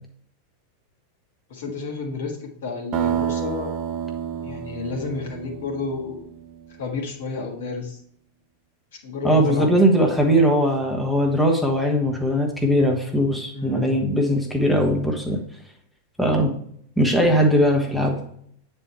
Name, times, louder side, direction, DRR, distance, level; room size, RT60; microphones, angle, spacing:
voice 1, 1.5-3.7 4.4-6.2 6.8-8.0 8.9-9.9 13.5-14.1, left 4 dB, 55° left, 2 dB, 1.7 m, -31 dB
sound 1, 2.9-6.7, right 8 dB, 40° right, 0.7 m, -29 dB
voice 2, 9.2-15.4 16.2-16.5 17.0-18.2, equal, ahead, 0 dB, 1.3 m, -20 dB
9.1 x 4.4 x 4.5 m, 0.66 s
figure-of-eight pair, 90°, 0 cm